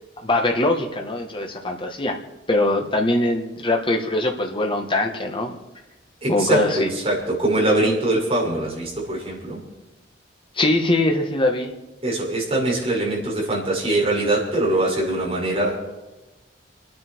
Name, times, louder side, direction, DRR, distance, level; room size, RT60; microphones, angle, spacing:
voice 1, 0.2-2.2 2.5-5.6 6.3-6.9 10.6-11.7, left 2 dB, 30° left, 3 dB, 1.9 m, -22 dB
voice 2, 6.2-9.6 12.0-16.0, right 1 dB, 30° right, -4 dB, 6.3 m, -22 dB
29.5 x 10.0 x 4.8 m, 1.0 s
head